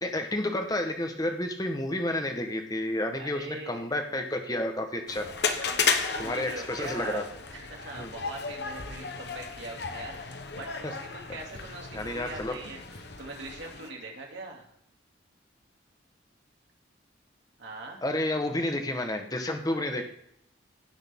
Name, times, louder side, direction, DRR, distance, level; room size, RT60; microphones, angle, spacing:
voice 1, 0.0-5.3 6.2-7.2 8.0-8.1 11.9-12.5 18.0-20.0, left 1 dB, 20° left, 5 dB, 1.1 m, -30 dB
voice 2, 3.2-4.0 5.6-14.7 17.6-18.0 19.7-20.0, right 2 dB, 70° right, -1 dB, 2.6 m, -42 dB
sound 1, 5.1-13.9, left 5 dB, 55° left, 1.0 m, -34 dB
16.5 x 6.5 x 3.6 m, 0.72 s
head